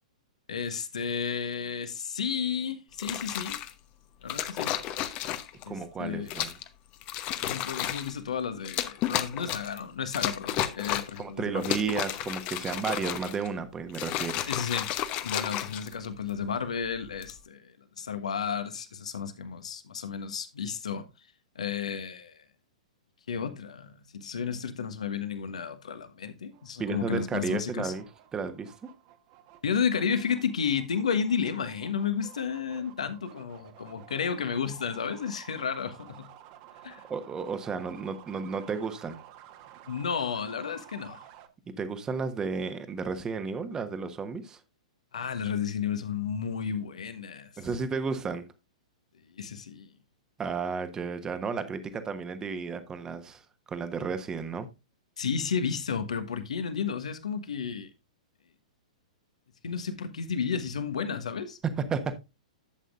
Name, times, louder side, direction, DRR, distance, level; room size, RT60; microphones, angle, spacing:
voice 1, 0.5-3.6 4.2-4.8 5.6-6.3 7.4-11.8 14.5-14.9 15.2-21.1 21.5-22.4 23.3-27.9 29.6-36.3 36.8-37.0 39.9-41.3 45.1-47.5 49.3-49.9 55.2-57.9 59.6-61.6, left 6 dB, 65° left, 1.4 m, -32 dB
sound 1, 2.9-3.7 4.3-5.6 6.3-6.7 7.0-8.1 8.6-9.8 10.1-11.2 11.6-13.5 13.9-16.3 17.0-17.4, left 12 dB, 35° left, 1.0 m, -32 dB
voice 2, 5.7-6.6 11.2-14.4 26.8-28.0 28.3-28.7 37.1-39.2 41.8-44.6 47.6-48.5 50.4-53.4 53.7-54.7 61.8-62.1, right 5 dB, 15° right, 1.2 m, -33 dB
sound 2, 26.5-41.5, right 12 dB, 40° right, 1.4 m, -52 dB
11.5 x 8.0 x 2.5 m
figure-of-eight pair, 110°, 4 cm